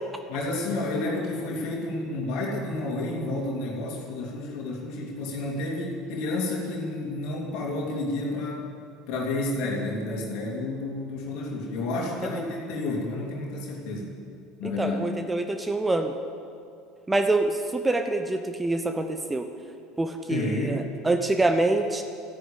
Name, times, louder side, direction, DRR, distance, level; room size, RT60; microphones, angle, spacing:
voice 1, 0.3-8.6 9.1-14.1 14.6-15.0 20.3-20.9, left 2 dB, 60° left, -1 dB, 2.8 m, -30 dB
voice 2, 14.6-16.1 17.1-19.5 20.0-22.0, right 2 dB, 15° right, 7 dB, 0.9 m, -26 dB
13.5 x 9.7 x 8.7 m, 2.5 s
hypercardioid pair, 70°, 0 cm